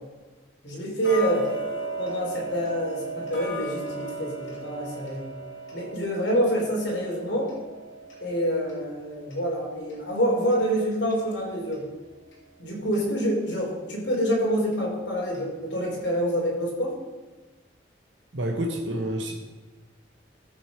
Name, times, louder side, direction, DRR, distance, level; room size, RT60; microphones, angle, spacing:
voice 1, 0.6-1.5 2.0-5.2 5.7-7.5 8.2-11.9 12.6-16.9, equal, 70° left, -3 dB, 3.4 m, -27 dB
Tick-tock, 1.0-11.9 12.3-12.4 12.9-13.0 13.5-13.6 14.1-14.2 14.7-14.8 15.3-15.4 15.9-16.0, right 2 dB, 85° left, 2.6 m, -37 dB
voice 2, 18.3-19.4, right 1 dB, 80° right, 1 dB, 1.2 m, -28 dB
13.5 x 6.2 x 5.0 m, 1.3 s
head